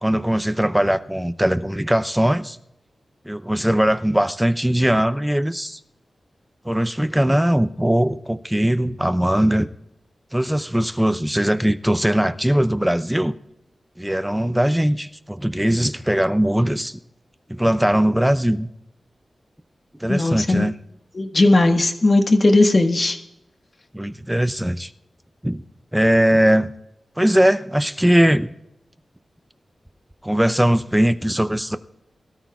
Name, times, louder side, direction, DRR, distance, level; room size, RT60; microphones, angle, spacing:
voice 1, 0.0-2.6 3.3-5.8 6.6-9.7 10.3-13.3 14.0-17.0 17.5-18.7 20.0-20.7 23.9-24.9 25.4-25.6 25.9-26.7 27.2-28.5 30.2-31.8, equal, 5° right, 12 dB, 0.6 m, -20 dB
voice 2, 20.1-20.7 21.1-23.2, left 2 dB, 45° left, 5 dB, 1.4 m, -17 dB
22.0 x 13.0 x 2.4 m, 0.82 s
wide cardioid pair, 75°, 0 cm